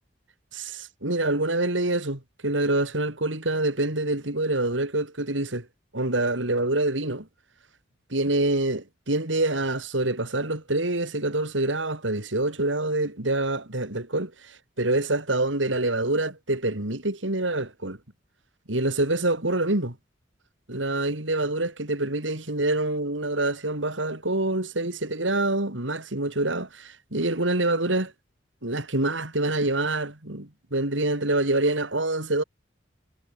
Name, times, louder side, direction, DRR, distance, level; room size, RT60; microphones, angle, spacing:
voice 1, 0.5-5.7 5.9-7.3 8.1-18.0 18.7-19.9 20.7-28.1 28.6-32.4, right 2 dB, 75° right, 4.1 m, -26 dB
head